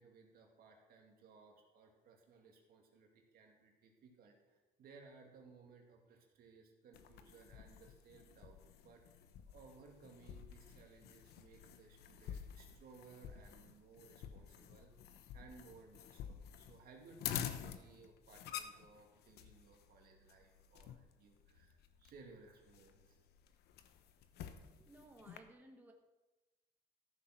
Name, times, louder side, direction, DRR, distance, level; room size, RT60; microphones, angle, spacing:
voice 1, 0.0-9.0 9.5-14.9 15.3-23.2 23.8-23.9 24.6-24.7, right 4 dB, 60° right, 2 dB, 2.3 m, -61 dB
sound 1, 6.9-25.4, left 9 dB, 75° left, 0.9 m, -50 dB
voice 2, 24.9-25.9, right 1 dB, 10° right, 2 dB, 1.2 m, -59 dB
13.5 x 6.4 x 6.0 m, 1.1 s
cardioid pair, 110°, 17 cm